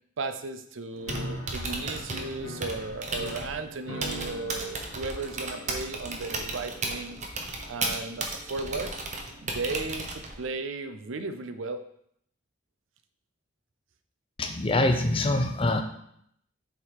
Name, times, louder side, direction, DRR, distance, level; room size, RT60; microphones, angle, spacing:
voice 1, 0.2-7.2 7.7-8.9 9.4-11.8, right 3 dB, 75° right, 9 dB, 0.6 m, -35 dB
Typing, 0.9-10.5, right 2 dB, 35° right, 0.9 m, -35 dB
sound 1, 1.0-9.4, equal, 90° left, 1.3 m, -43 dB
voice 2, 14.4-15.8, left 2 dB, 25° left, 6 dB, 0.6 m, -24 dB
7.1 x 3.8 x 4.8 m, 0.71 s
head